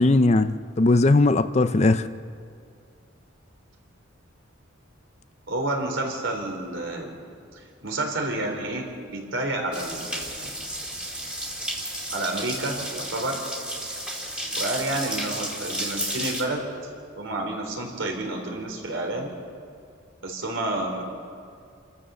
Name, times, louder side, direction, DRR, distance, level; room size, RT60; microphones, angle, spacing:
voice 1, 0.0-2.1, left 2 dB, 35° left, 11 dB, 0.5 m, -19 dB
voice 2, 5.5-7.2 7.5-8.8 9.1-10.5 12.1-13.4 14.6-16.6 17.2-19.3 20.2-21.0, right 2 dB, 70° right, 2 dB, 3.8 m, -30 dB
sound 1, 9.7-16.4, right 1 dB, 5° right, 2.3 m, -32 dB
28.5 x 14.0 x 6.9 m, 2.3 s
head